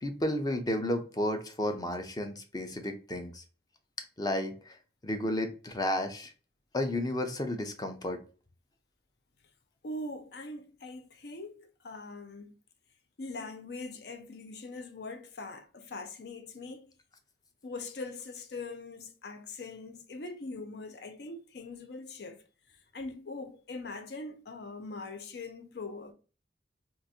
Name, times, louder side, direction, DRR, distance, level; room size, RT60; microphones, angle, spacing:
voice 1, 0.0-3.4 4.2-4.7 5.0-6.3 6.7-8.2, left 1 dB, 20° left, 0.5 m, -32 dB
voice 2, 9.8-12.5 13.2-16.9 17.6-22.4 22.9-26.1, left 3 dB, 65° left, 0.6 m, -42 dB
3.8 x 2.5 x 2.7 m
head